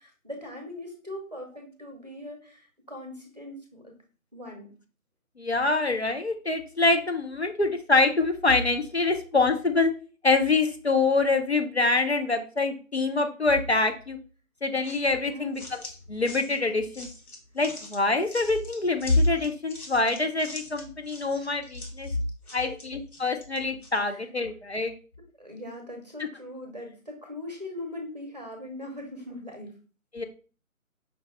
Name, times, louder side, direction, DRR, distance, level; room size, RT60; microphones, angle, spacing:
voice 1, 0.0-3.9 4.3-4.7 15.2-15.6 22.4-22.8 24.0-24.2 25.4-29.8, left 1 dB, 30° right, 2 dB, 0.8 m, -40 dB
voice 2, 5.4-9.9 10.2-14.2 14.6-15.8 16.1-17.1 17.6-22.1 22.5-25.0 30.1-30.2, left 3 dB, 50° left, 5 dB, 0.5 m, -25 dB
sound 1, 14.8-24.0, left 2 dB, 85° left, 1.3 m, -45 dB
5.2 x 2.2 x 4.0 m, 0.37 s
figure-of-eight pair, 155°, 43 cm